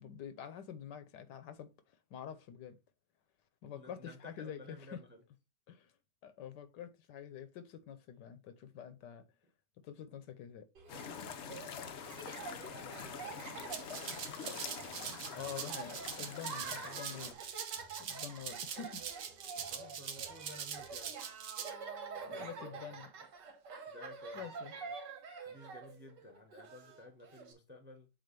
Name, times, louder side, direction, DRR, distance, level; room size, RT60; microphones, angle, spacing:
voice 1, 0.0-1.7 2.1-2.8 3.6-5.0 5.7-5.9 6.2-9.3 9.8-10.7 15.3-17.3 18.0-19.1 22.3-23.1 24.3-24.7, left 8 dB, 85° left, 1.4 m, -47 dB
voice 2, 3.7-5.2 11.9-14.9 15.3-16.2 16.6-17.4 19.6-21.1 22.2-22.9 23.9-25.0 25.3-28.1, left 1 dB, 10° right, 0.8 m, -55 dB
Laughter, 10.8-27.5, right 5 dB, 80° right, 2.0 m, -48 dB
sound 1, 10.9-17.3, left 7 dB, 60° left, 0.7 m, -46 dB
Rattle (instrument), 13.7-21.7, right 7 dB, 60° right, 1.2 m, -43 dB
7.6 x 2.6 x 5.2 m
omnidirectional pair, 1.8 m